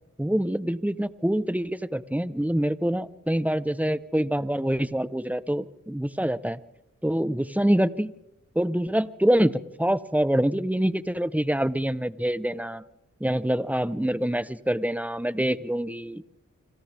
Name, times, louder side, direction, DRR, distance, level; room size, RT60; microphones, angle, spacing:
voice 1, 0.2-6.6 7.0-8.1 8.5-12.8 13.2-16.4, right 1 dB, 5° right, 14 dB, 1.0 m, -25 dB
29.0 x 26.5 x 3.6 m, 0.88 s
cardioid pair, 45°, 32 cm